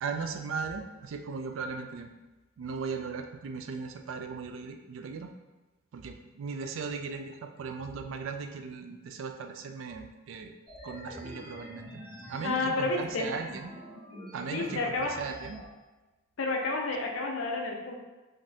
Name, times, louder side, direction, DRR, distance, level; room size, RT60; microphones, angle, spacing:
voice 1, 0.0-2.1 2.6-5.3 5.9-10.5 10.8-12.0 12.3-13.7 14.3-15.6, right 5 dB, 75° right, 6 dB, 0.3 m, -37 dB
sound 1, 10.7-15.7, equal, 50° right, 1.3 m, -46 dB
voice 2, 12.4-13.3 14.5-15.1 16.4-18.0, left 3 dB, 85° left, 1 dB, 0.5 m, -30 dB
2.6 x 2.6 x 3.2 m, 1.2 s
head